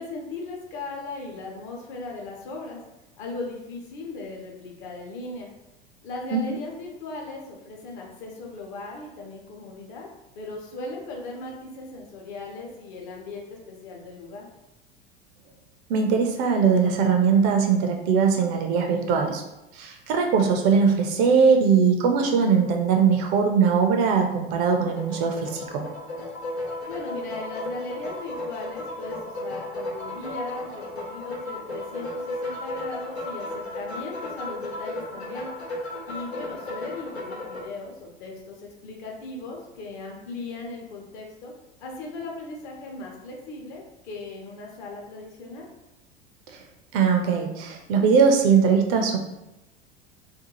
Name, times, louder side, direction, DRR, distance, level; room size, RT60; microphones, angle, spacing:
voice 1, 0.0-2.8 3.2-5.5 6.0-10.1 10.3-14.5 26.8-35.5 36.0-41.5 41.8-45.7, left 3 dB, 50° left, 0 dB, 0.8 m, -38 dB
voice 2, 15.9-19.4 19.7-25.8 46.5-46.6 46.9-49.2, right 6 dB, 40° right, 3 dB, 0.4 m, -21 dB
sound 1, 24.8-37.6, left 2 dB, 85° left, 0.7 m, -34 dB
2.6 x 2.3 x 2.8 m, 0.93 s
figure-of-eight pair, 80°, 31 cm